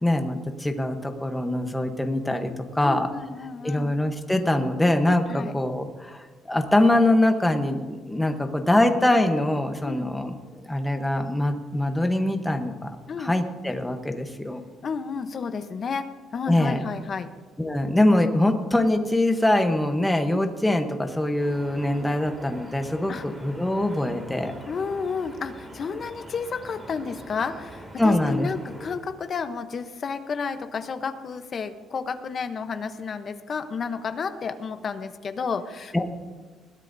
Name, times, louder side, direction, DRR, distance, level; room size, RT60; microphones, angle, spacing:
voice 1, 0.0-3.1 3.6-10.3 10.6-12.9 13.2-14.6 16.5-16.8 17.6-24.5 28.0-28.5 35.9-36.0, left 1 dB, 5° left, 5 dB, 1.0 m, -23 dB
voice 2, 2.8-3.9 5.3-5.5 9.8-10.1 13.1-13.4 14.8-17.3 23.1-23.3 24.7-36.0, left 5 dB, 30° left, 9 dB, 0.8 m, -31 dB
sound 1, 21.4-29.0, right 1 dB, 10° right, 2.3 m, -43 dB
20.5 x 16.0 x 2.7 m, 1.4 s
cardioid pair, 175°, 0 cm